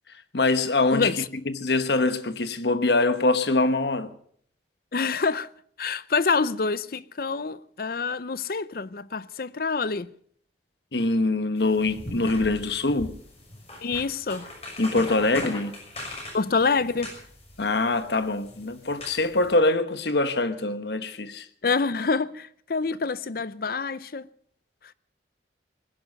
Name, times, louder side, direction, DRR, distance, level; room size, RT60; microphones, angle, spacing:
voice 1, 0.3-4.1 10.9-13.1 14.8-15.8 17.6-21.5, left 2 dB, 70° left, 1.2 m, -24 dB
voice 2, 4.9-5.5 5.8-10.1 13.8-14.5 16.3-17.1 21.6-24.3, left 4 dB, 55° left, 0.6 m, -26 dB
sound 1, 11.6-19.5, left 1 dB, 35° left, 6.1 m, -40 dB
20.0 x 11.0 x 6.6 m
head